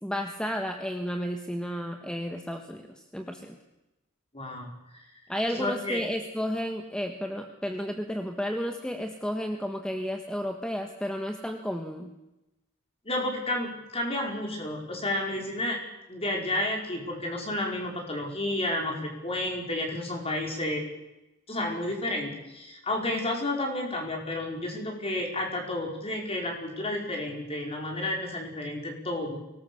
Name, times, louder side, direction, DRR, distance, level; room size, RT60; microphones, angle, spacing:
voice 1, 0.0-2.9 3.1-3.6 5.3-12.1, equal, 5° left, 4 dB, 1.4 m, -32 dB
voice 2, 4.3-5.0 5.5-6.0 13.0-15.8 16.1-20.9 21.5-29.4, left 1 dB, 30° left, 1 dB, 5.2 m, -31 dB
23.5 x 19.5 x 7.1 m, 0.97 s
head